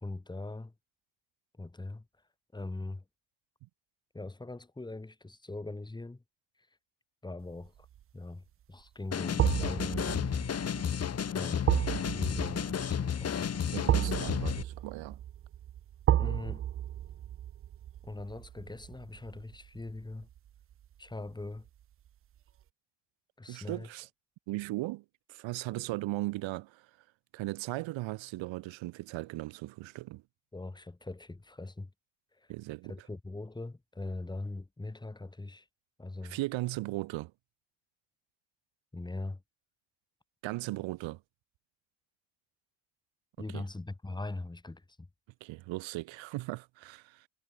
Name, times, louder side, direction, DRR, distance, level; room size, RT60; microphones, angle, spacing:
voice 1, 0.0-0.7 1.6-2.1 2.5-3.0 4.1-6.2 7.2-7.9 8.1-10.3 11.3-13.9 16.2-16.6 18.0-20.3 21.0-21.7 23.4-23.9 30.5-31.9 32.4-32.5 32.9-35.7 36.0-36.4 38.9-39.4 43.4-45.1, left 2 dB, 10° left, 3.0 m, -41 dB
sound 1, 7.6-8.0 9.4-20.4 20.7-20.9, right 11 dB, 30° right, 0.4 m, -33 dB
sound 2, 9.1-14.6, left 8 dB, 35° left, 1.8 m, -32 dB
voice 2, 13.7-15.2 23.5-24.1 24.5-26.9 27.3-30.2 32.5-33.1 36.2-37.3 40.4-41.2 43.5-43.6 45.4-47.3, right 19 dB, 80° right, 1.5 m, -37 dB
cardioid pair, 140°, 45 cm